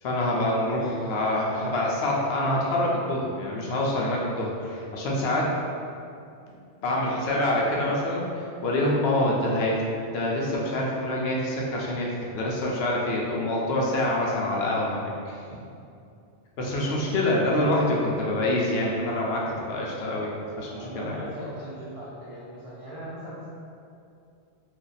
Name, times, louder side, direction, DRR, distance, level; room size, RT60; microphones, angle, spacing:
voice 1, 0.0-5.5 6.5-6.6 6.8-15.4 16.6-20.7 21.0-21.3, left 1 dB, 70° left, -3 dB, 0.8 m, -26 dB
voice 2, 20.7-23.5, equal, 60° right, -8 dB, 0.3 m, -39 dB
2.6 x 2.2 x 3.8 m, 2.5 s
omnidirectional pair, 1.2 m